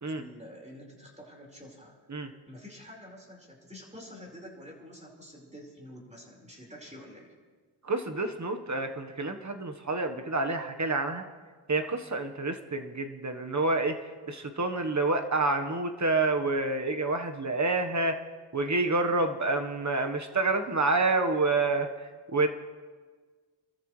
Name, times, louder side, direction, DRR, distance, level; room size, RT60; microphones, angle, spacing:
voice 1, 0.1-2.0 2.5-7.3, equal, 15° right, -1 dB, 5.0 m, -48 dB
voice 2, 7.8-11.2 11.7-14.0 14.2-18.2 18.5-22.5, right 3 dB, 35° right, 6 dB, 1.4 m, -28 dB
26.5 x 13.5 x 3.3 m, 1.5 s
cardioid pair, 60°, 47 cm